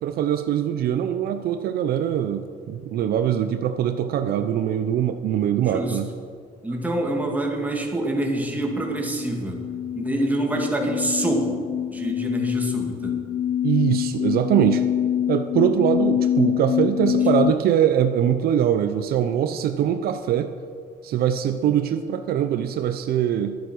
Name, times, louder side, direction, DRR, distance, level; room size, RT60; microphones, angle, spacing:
voice 1, 0.0-6.1 13.6-14.8 15.3-20.5 21.0-23.6, right 10 dB, 65° right, 9 dB, 0.6 m, -22 dB
voice 2, 5.6-6.0 6.6-9.6 10.0-11.6 11.9-13.1, right 1 dB, 10° right, 0 dB, 2.3 m, -26 dB
sound 1, 8.3-17.5, left 10 dB, 45° left, 0.4 m, -25 dB
12.0 x 9.4 x 6.2 m, 2.1 s
cardioid pair, 110°, 17 cm